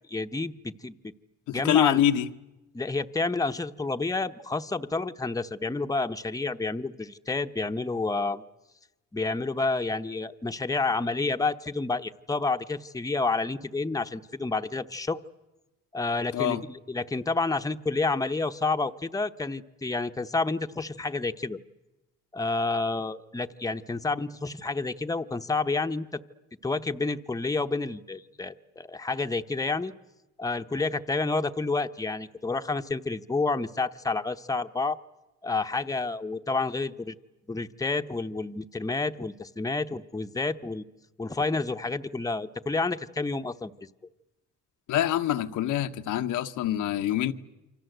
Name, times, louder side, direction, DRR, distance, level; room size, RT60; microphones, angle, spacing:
voice 1, 0.1-0.9 1.5-2.0 2.7-8.4 9.1-15.2 15.9-21.6 22.3-26.2 26.6-29.9 30.4-35.0 35.4-37.1 37.5-40.8 41.2-43.7, left 3 dB, 10° left, 0.9 m, -29 dB
voice 2, 1.5-2.3 16.3-16.6 44.9-47.3, left 11 dB, 85° left, 1.1 m, -25 dB
28.5 x 25.0 x 8.0 m
cardioid pair, 90°, 30 cm